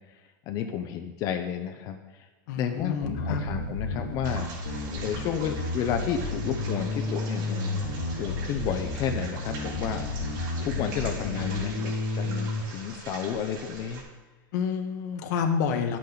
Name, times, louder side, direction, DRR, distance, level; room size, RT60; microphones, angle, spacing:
voice 1, 0.5-2.3 2.6-4.5 5.0-7.8 8.2-10.0 10.6-14.0, left 8 dB, 35° left, 6 dB, 0.6 m, -32 dB
voice 2, 2.5-3.4 14.5-16.0, left 6 dB, 55° left, 5 dB, 1.2 m, -29 dB
Bass guitar, 3.0-12.6, left 2 dB, 80° left, 2.0 m, -31 dB
sound 1, 4.2-14.0, right 3 dB, 65° right, 3.5 m, -42 dB
10.5 x 8.5 x 4.0 m, 1.2 s
supercardioid pair, 155°, 11 cm